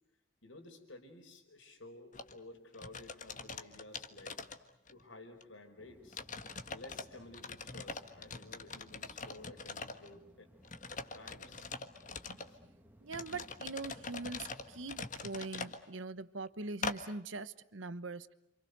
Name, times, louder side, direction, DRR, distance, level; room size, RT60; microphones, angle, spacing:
voice 1, 0.4-4.4 4.9-6.3 6.7-10.5 10.9-11.7 12.5-12.6, left 2 dB, 85° left, 5.0 m, -54 dB
sound 1, 2.1-2.3 2.7-5.0 5.4-5.5 6.1-7.0 7.3-10.1 10.6-12.5 13.1-15.8 16.8-17.0, left 4 dB, 40° left, 1.6 m, -43 dB
sound 2, 5.8-15.1, equal, 10° right, 1.9 m, -62 dB
voice 2, 13.0-18.3, right 3 dB, 80° right, 1.1 m, -42 dB
29.0 x 27.0 x 6.7 m
head